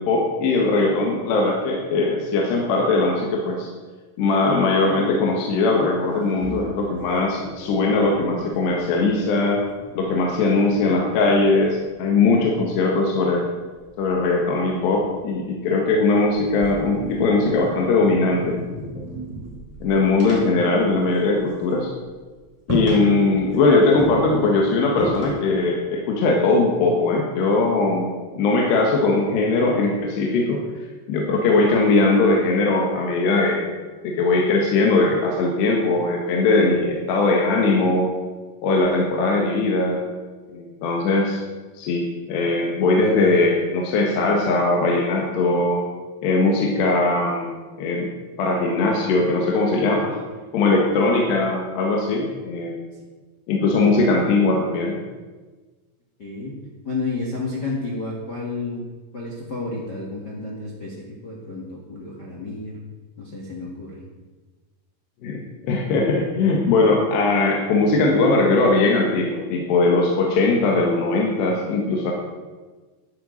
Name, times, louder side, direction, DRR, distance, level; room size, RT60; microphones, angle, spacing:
voice 1, 0.0-3.7 4.2-9.6 10.0-13.5 14.0-19.1 19.8-21.9 22.7-30.6 31.1-33.7 34.0-38.1 38.6-40.0 40.5-41.4 41.8-45.8 46.2-47.5 47.8-48.1 48.4-50.2 50.5-52.7 53.5-55.0 65.2-72.1, left 3 dB, 70° left, 0 dB, 3.5 m, -20 dB
sound 1, 6.0-9.2 9.5-12.4 13.8-15.8 16.2-21.5 21.8-22.0 22.3-22.4 22.7-23.6 24.0-25.7, left 1 dB, 5° right, 3.4 m, -33 dB
voice 2, 56.2-56.5 56.8-58.8 59.1-62.8 63.2-64.0, left 3 dB, 50° left, -3 dB, 1.3 m, -31 dB
11.5 x 9.0 x 7.8 m, 1.3 s
omnidirectional pair, 5.1 m